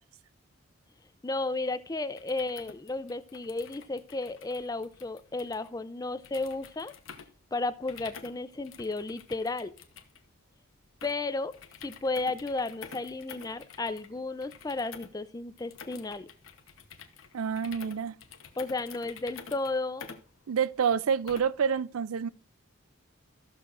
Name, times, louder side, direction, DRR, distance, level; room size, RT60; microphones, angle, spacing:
voice 1, 1.2-6.9 7.5-9.7 11.0-16.3 18.6-20.1, left 2 dB, 15° left, 0.4 m, -33 dB
sound 1, 2.2-21.7, left 6 dB, 75° left, 1.0 m, -50 dB
voice 2, 17.3-18.2 20.5-22.3, right 7 dB, 85° right, 0.4 m, -28 dB
14.0 x 6.5 x 2.5 m
head